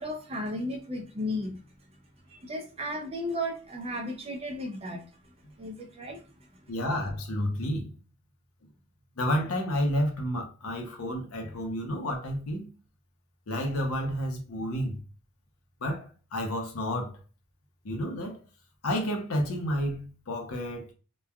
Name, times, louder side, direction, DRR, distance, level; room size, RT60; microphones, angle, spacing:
voice 1, 0.0-1.6 2.3-6.5, left 1 dB, 25° right, 0.4 m, -35 dB
voice 2, 6.7-7.9 9.2-12.7 13.5-15.0 15.8-17.1 17.8-18.4 18.8-20.9, equal, 75° left, 0.7 m, -30 dB
3.0 x 2.2 x 2.3 m
head